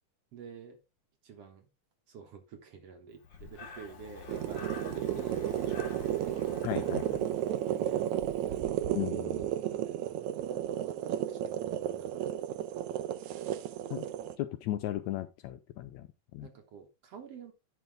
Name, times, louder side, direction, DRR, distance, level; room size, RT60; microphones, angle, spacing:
voice 1, 0.3-0.8 1.2-1.7 2.1-5.8 7.2-8.1 8.5-9.0 9.5-12.7 16.4-17.5, right 6 dB, 60° right, 2.0 m, -50 dB
Breathing, 3.2-8.1, left 5 dB, 50° left, 1.5 m, -47 dB
sound 1, 4.3-14.3, right 12 dB, 75° right, 2.0 m, -33 dB
voice 2, 6.6-7.2 8.9-9.5 13.9-14.1 14.4-16.1 16.3-16.5, left 14 dB, 80° left, 1.8 m, -36 dB
9.8 x 6.0 x 3.4 m
omnidirectional pair, 3.7 m